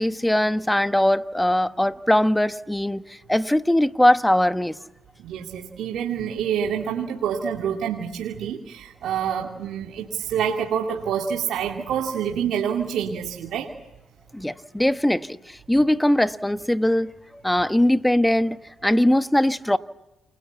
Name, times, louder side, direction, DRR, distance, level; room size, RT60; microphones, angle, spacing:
voice 1, 0.0-3.0 3.3-4.8 14.3-17.1 17.4-19.8, left 1 dB, 5° left, 1.1 m, -21 dB
voice 2, 5.2-13.7, right 8 dB, 75° right, 2.7 m, -27 dB
29.0 x 23.0 x 8.3 m
supercardioid pair, 70°, 0 cm